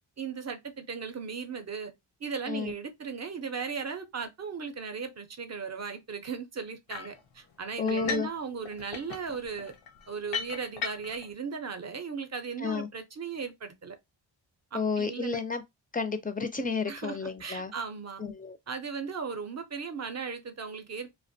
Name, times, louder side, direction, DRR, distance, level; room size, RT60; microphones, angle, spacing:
voice 1, 0.2-1.9 2.2-9.7 10.1-14.0 14.7-15.4 16.9-18.2 18.7-21.1, right 5 dB, 35° right, 0.6 m, -37 dB
sound 1, 6.9-7.2 7.9-8.4 8.7-11.3, left 7 dB, 85° left, 0.7 m, -37 dB
voice 2, 7.8-8.3 12.6-12.9 14.7-15.6 15.9-17.7 18.2-18.6, left 4 dB, 20° left, 0.4 m, -31 dB
2.4 x 2.1 x 2.6 m
cardioid pair, 70°, 46 cm